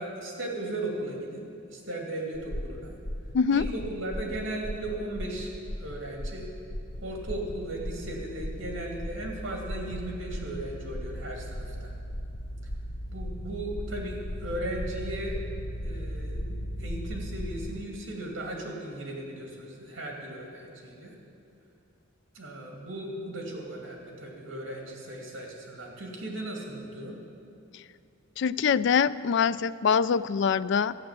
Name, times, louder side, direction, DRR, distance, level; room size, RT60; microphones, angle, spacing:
voice 1, 0.0-2.9 3.5-6.5 7.0-11.9 13.1-15.4 15.8-21.1 22.3-27.2, right 1 dB, 65° right, 0 dB, 2.5 m, -37 dB
sound 1, 2.3-17.8, equal, 80° left, 1.2 m, -38 dB
voice 2, 3.3-3.7 28.4-31.0, left 6 dB, 60° left, 16 dB, 0.3 m, -24 dB
sound 2, 6.9-17.9, equal, 25° left, 0.7 m, -39 dB
13.5 x 9.7 x 7.4 m, 2.6 s
head